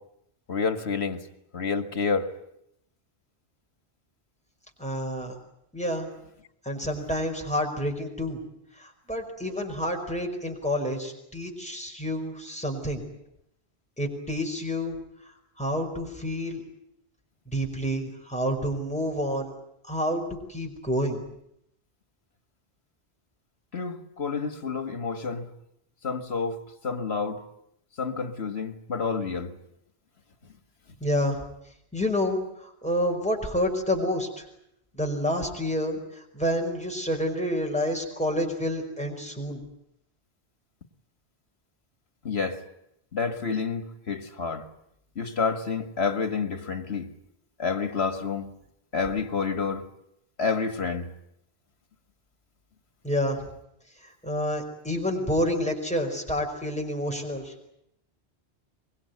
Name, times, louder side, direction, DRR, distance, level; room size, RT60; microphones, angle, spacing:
voice 1, 0.5-1.2 1.5-2.2 23.7-25.5 26.0-26.6 26.8-27.4 28.0-29.5 42.2-42.6 43.1-44.7 45.2-47.1 47.6-48.5 48.9-49.8 50.4-51.1, left 5 dB, 75° left, 2.2 m, -29 dB
voice 2, 4.8-5.3 5.7-6.1 6.6-8.4 8.7-13.0 14.0-15.0 15.6-16.6 17.5-19.5 19.9-21.2 31.0-31.4 31.9-34.4 34.9-39.6 53.0-53.4 54.0-57.5, equal, 5° left, 5.2 m, -29 dB
24.5 x 21.5 x 9.5 m
omnidirectional pair, 1.1 m